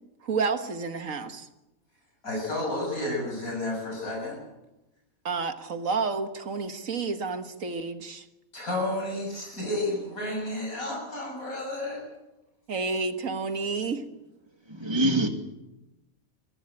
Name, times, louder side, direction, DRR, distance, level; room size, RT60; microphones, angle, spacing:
voice 1, 0.2-1.5 5.3-8.3 12.7-14.1, right 4 dB, 70° right, 1.9 m, -30 dB
voice 2, 2.2-4.4 8.5-12.0, left 1 dB, 80° left, 7.6 m, -31 dB
voice 3, 14.7-15.3, right 1 dB, 20° right, 2.2 m, -24 dB
23.0 x 15.0 x 8.9 m
omnidirectional pair, 1.5 m